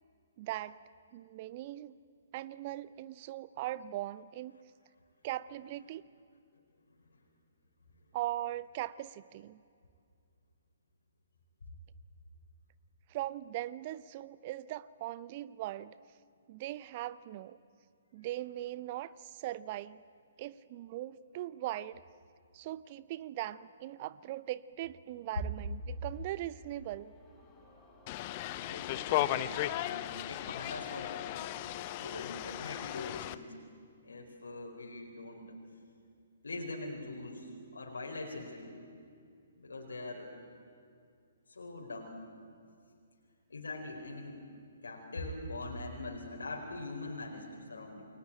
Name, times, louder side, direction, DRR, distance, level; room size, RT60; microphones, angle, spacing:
voice 1, 0.4-0.8 1.1-2.0 2.3-4.5 5.2-6.0 8.1-9.6 13.1-15.9 16.5-17.6 18.1-20.0 20.4-22.0 22.5-27.1, right 14 dB, 35° right, 18 dB, 0.6 m, -40 dB
sound 1, 25.7-32.6, left 3 dB, 10° left, 6.8 m, -58 dB
sound 2, 28.1-33.4, left 14 dB, 30° left, 0.8 m, -36 dB
voice 2, 28.6-29.5 29.8-31.6 32.0-33.5 34.0-35.4 36.4-38.7 39.6-40.3 41.5-42.2 43.5-44.4 44.8-48.1, left 2 dB, 65° left, 1 dB, 4.5 m, -42 dB
29.5 x 22.5 x 9.0 m, 2.4 s
figure-of-eight pair, 125°, 0 cm